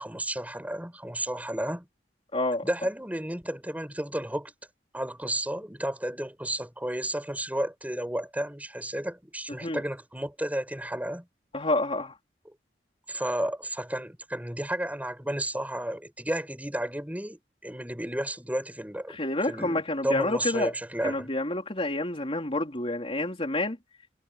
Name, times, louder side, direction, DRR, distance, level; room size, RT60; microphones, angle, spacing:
voice 1, 0.0-1.9 2.6-4.5 4.9-11.3 13.1-19.2 19.4-21.3, right 1 dB, 10° right, 5.5 m, -32 dB
voice 2, 2.3-2.6 9.5-9.8 11.5-12.1 19.1-20.7 21.0-23.8, left 2 dB, 35° left, 3.9 m, -28 dB
head